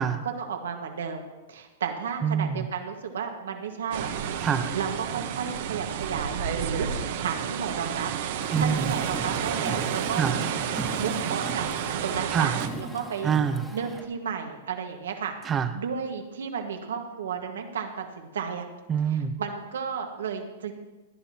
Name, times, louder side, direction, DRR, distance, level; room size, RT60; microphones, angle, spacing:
voice 1, 0.4-4.1 4.7-6.9 7.2-8.1 8.4-10.4 10.9-11.6 12.0-13.3 13.7-15.3 15.7-18.7 19.4-20.7, right 6 dB, 85° right, 4 dB, 1.7 m, -33 dB
voice 2, 2.2-2.7 4.4-4.7 8.5-8.9 10.2-10.4 12.3-12.6 13.2-13.6 15.4-15.7 18.9-19.4, right 7 dB, 20° right, 10 dB, 0.8 m, -25 dB
sound 1, 3.9-12.7, right 8 dB, 65° right, 1.0 m, -31 dB
Car, 8.4-14.1, equal, ahead, 1.5 m, -38 dB
17.5 x 11.0 x 2.9 m, 1.2 s
hypercardioid pair, 135°, 0 cm